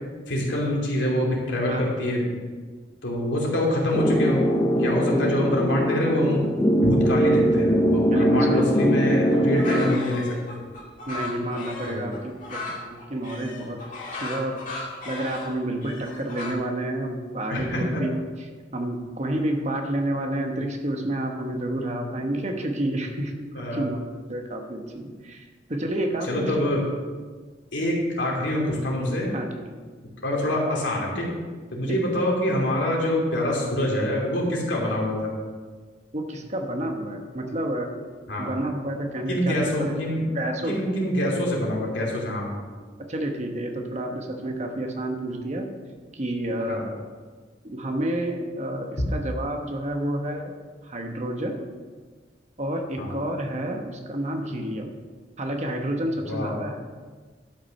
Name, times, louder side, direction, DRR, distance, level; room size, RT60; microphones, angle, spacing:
voice 1, 0.3-2.4 3.0-4.5 4.7-6.4 6.8-10.3 11.9-12.1 17.5-18.0 23.5-23.9 26.2-26.8 27.7-29.3 30.2-31.3 31.7-35.3 38.3-38.5 39.3-40.3 40.7-42.5 46.7-46.9 53.0-53.2 56.2-56.5, left 1 dB, 80° left, -3 dB, 2.8 m, -25 dB
sound 1, 3.9-10.0, equal, 20° left, 0.5 m, -21 dB
voice 2, 8.1-8.6 11.1-13.8 14.1-18.1 18.7-24.0 24.3-26.8 29.3-29.6 31.9-32.0 36.1-37.9 38.4-40.0 40.3-41.0 43.1-45.7 46.1-47.0 47.6-50.5 50.8-51.6 52.6-54.9 55.4-56.8, right 1 dB, 40° right, 3 dB, 1.1 m, -30 dB
sound 2, 9.3-16.5, left 2 dB, 45° left, 2.2 m, -36 dB
11.5 x 6.1 x 5.4 m, 1.5 s
head